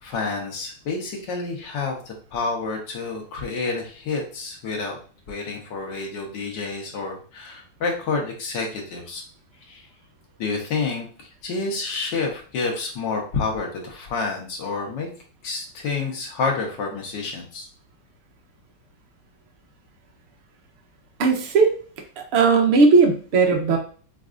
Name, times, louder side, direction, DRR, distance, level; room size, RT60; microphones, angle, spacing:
voice 1, 0.0-5.0 5.3-9.2 9.7-9.9 10.4-15.1 15.4-17.7, left 4 dB, 65° left, 0 dB, 1.6 m, -29 dB
voice 2, 21.2-21.7 22.2-23.8, right 4 dB, 80° right, 2 dB, 0.5 m, -17 dB
5.2 x 2.5 x 2.4 m, 0.39 s
omnidirectional pair, 2.2 m